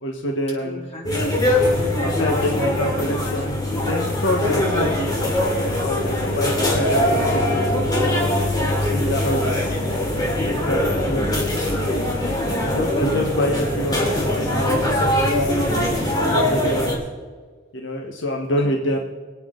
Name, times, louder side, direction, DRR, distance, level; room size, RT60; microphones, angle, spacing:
voice 1, 0.0-0.9 2.0-5.2 5.5-9.8 10.4-11.3 12.6-17.0 17.7-19.0, left 1 dB, 70° left, 2 dB, 1.3 m, -27 dB
voice 2, 0.6-2.0 12.2-12.7 18.6-19.0, left 2 dB, 35° left, -4 dB, 3.9 m, -39 dB
sound 1, 1.0-16.9, left 1 dB, 20° left, 2.8 m, -22 dB
25.0 x 8.7 x 3.9 m, 1.5 s
head